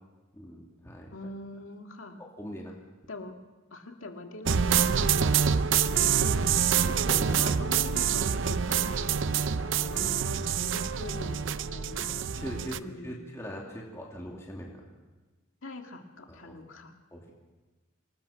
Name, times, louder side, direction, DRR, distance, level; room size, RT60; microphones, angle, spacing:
voice 1, 0.3-1.1 2.4-2.7 6.8-7.6 12.1-14.8 16.3-16.5 17.1-17.3, equal, 15° left, -2 dB, 2.6 m, -42 dB
voice 2, 1.1-2.2 3.1-3.4 3.7-5.3 5.7-6.9 7.3-12.2 12.7-13.3 15.6-17.0, left 2 dB, 75° left, 4 dB, 2.1 m, -43 dB
sound 1, 4.5-12.8, right 7 dB, 60° right, 0.6 m, -26 dB
27.0 x 19.5 x 5.8 m, 1.2 s
head